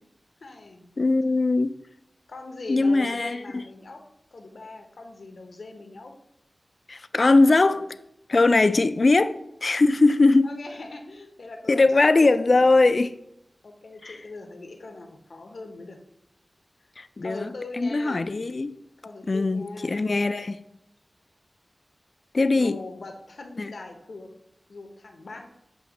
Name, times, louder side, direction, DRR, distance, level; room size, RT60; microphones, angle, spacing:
voice 1, 0.4-0.9 2.3-4.0 4.3-6.1 7.6-7.8 10.4-12.9 13.6-16.0 17.2-18.3 19.0-20.1 22.6-24.3 24.7-25.5, left 2 dB, 80° left, 0.9 m, -41 dB
voice 2, 1.0-1.8 2.7-3.6 6.9-7.9 8.3-9.4 9.6-10.5 11.7-13.1 14.0-14.2 17.0-17.5 17.8-18.8 19.3-20.6 22.3-22.8 23.6-23.7, left 3 dB, 55° left, 0.4 m, -20 dB
7.8 x 2.7 x 5.0 m
cardioid pair, 50°, 0 cm